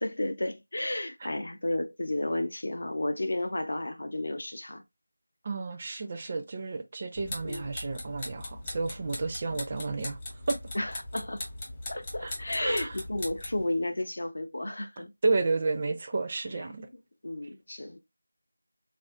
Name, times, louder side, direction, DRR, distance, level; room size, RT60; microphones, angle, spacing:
voice 1, 0.0-4.8 7.4-7.7 9.5-9.6 10.7-11.4 11.9-15.1 16.5-16.7 16.9-18.0, left 1 dB, 60° left, 0.6 m, -32 dB
voice 2, 5.4-10.2 10.5-10.6 12.2-12.3 12.6-12.9 15.2-16.9, right 3 dB, 30° right, 0.4 m, -31 dB
sound 1, 7.2-13.6, left 1 dB, 20° left, 0.7 m, -40 dB
3.4 x 2.4 x 2.3 m
figure-of-eight pair, 170°, 0 cm